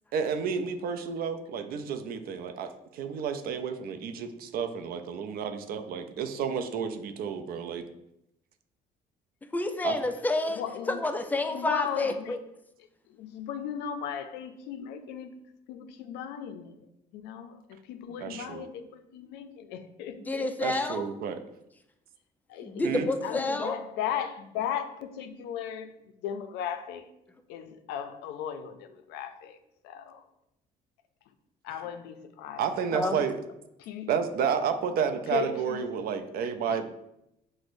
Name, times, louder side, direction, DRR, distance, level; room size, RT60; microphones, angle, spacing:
voice 1, 0.1-7.8 9.8-9.9 18.2-18.6 20.6-21.4 22.8-23.1 32.6-33.4 34.1-36.8, right 7 dB, 65° right, 0.4 m, -31 dB
voice 2, 9.5-10.6 10.9-12.4 20.3-21.0 22.6-23.7 32.9-33.2, left 2 dB, 10° left, 0.3 m, -29 dB
voice 3, 10.5-11.1 11.5-12.4 12.8-15.3 15.7-20.8 22.5-25.9 26.2-27.1 27.5-29.6 29.8-30.2 31.6-32.7 33.0-33.1 33.8-34.1 35.3-36.1 36.7-36.8, left 8 dB, 90° left, 0.4 m, -37 dB
6.0 x 2.0 x 2.5 m
cardioid pair, 110°, 17 cm